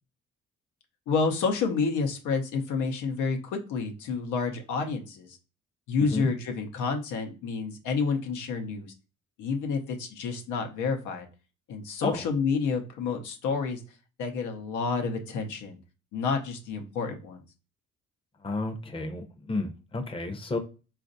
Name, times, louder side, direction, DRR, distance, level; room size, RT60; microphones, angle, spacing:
voice 1, 1.1-5.4 5.9-8.9 9.4-11.3 11.7-13.8 14.2-15.8 16.1-17.4, left 5 dB, 90° left, 0.7 m, -29 dB
voice 2, 18.4-20.6, left 2 dB, 20° left, 0.6 m, -32 dB
4.0 x 2.5 x 2.5 m
cardioid pair, 90°, 30 cm